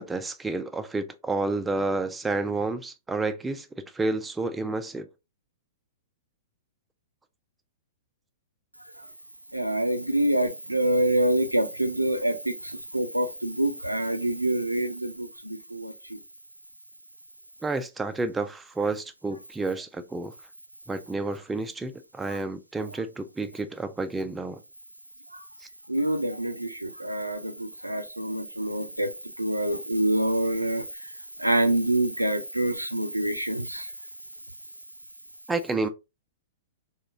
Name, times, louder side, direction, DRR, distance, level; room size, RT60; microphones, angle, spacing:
voice 1, 0.0-5.1 17.6-20.3 20.9-24.6 25.6-25.7 35.5-35.9, right 3 dB, 10° right, 0.3 m, -30 dB
voice 2, 9.5-16.2 22.3-22.4 25.9-30.8 31.4-33.9, right 1 dB, 90° right, 0.4 m, -26 dB
3.4 x 2.9 x 2.5 m
figure-of-eight pair, 105°, 0 cm